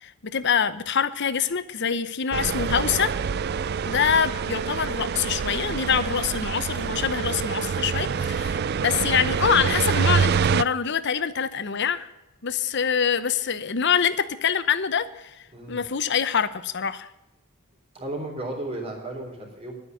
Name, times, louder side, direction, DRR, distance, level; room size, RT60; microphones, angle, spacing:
voice 1, 0.0-3.2 3.9-12.1 12.4-15.3 15.7-17.1, left 7 dB, 55° left, 14 dB, 0.8 m, -25 dB
sound 1, 2.3-10.6, right 6 dB, 50° right, 0.4 m, -26 dB
voice 2, 17.9-19.7, right 1 dB, 30° right, 1 dB, 3.6 m, -34 dB
11.5 x 9.3 x 6.7 m, 0.96 s
head